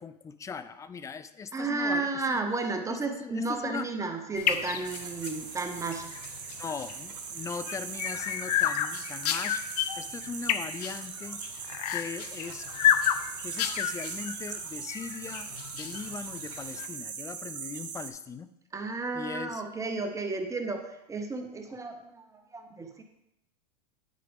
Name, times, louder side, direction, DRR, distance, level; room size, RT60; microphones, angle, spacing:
voice 1, 0.0-2.4 2.9-3.9 6.6-9.6 10.0-11.4 11.9-12.7 13.4-18.5 19.1-19.6, left 5 dB, 15° left, 13 dB, 0.4 m, -39 dB
voice 2, 1.5-6.0 18.7-22.3 22.5-23.0, right 3 dB, 15° right, 5 dB, 0.8 m, -32 dB
sound 1, 4.3-16.9, left 10 dB, 70° left, 0.6 m, -31 dB
sound 2, 4.8-18.1, right 7 dB, 80° right, 0.9 m, -40 dB
9.9 x 4.9 x 3.5 m, 0.83 s
hypercardioid pair, 105°, 21 cm